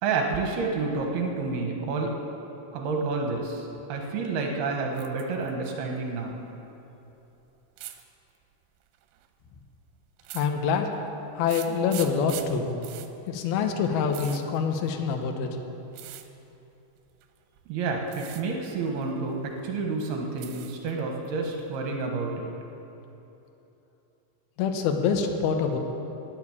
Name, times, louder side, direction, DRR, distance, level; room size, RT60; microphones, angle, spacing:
voice 1, 0.0-2.1 2.7-6.4 17.7-22.5, right 4 dB, 70° right, 1 dB, 2.7 m, -29 dB
sound 1, 4.9-5.5 5.8-6.5 7.8-8.0 8.9-9.3 10.2-11.0 11.5-15.3 15.9-16.3 17.2-17.6 18.0-18.4 18.8-19.6 20.0-20.9 21.3-21.9, right 13 dB, 85° right, 3.2 m, -43 dB
voice 2, 10.3-10.9 11.4-12.8 13.3-15.5 24.6-25.8, left 6 dB, 80° left, 4 dB, 2.2 m, -26 dB
15.5 x 7.1 x 9.9 m, 3.0 s
omnidirectional pair, 5.7 m